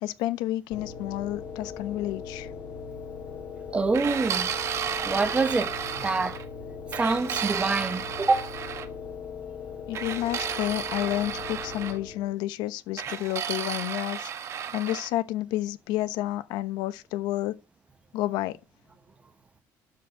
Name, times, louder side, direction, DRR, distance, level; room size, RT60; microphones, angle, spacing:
voice 1, 0.0-2.5 9.9-17.6 18.1-18.6, left 15 dB, 85° left, 1.0 m, -30 dB
sound 1, 0.7-12.4, left 6 dB, 45° left, 6.0 m, -39 dB
voice 2, 3.7-4.5 5.0-6.4 6.9-8.5, right 3 dB, 15° right, 0.9 m, -26 dB
sound 2, 3.9-6.4 6.9-8.9 9.9-12.0 13.0-15.1, right 8 dB, 40° right, 1.1 m, -33 dB
12.5 x 4.7 x 6.4 m
cardioid pair, 155°, 7 cm